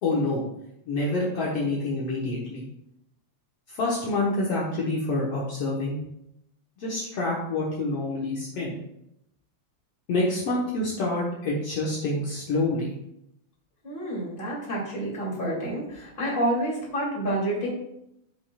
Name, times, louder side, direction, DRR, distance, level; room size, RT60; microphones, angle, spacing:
voice 1, 0.0-0.4 0.9-2.7 3.7-6.0 6.8-8.8 10.1-12.9, left 2 dB, 60° left, -4 dB, 2.2 m, -27 dB
voice 2, 13.8-17.7, right 1 dB, 20° left, -4 dB, 2.9 m, -28 dB
14.5 x 5.7 x 2.4 m, 0.81 s
omnidirectional pair, 3.3 m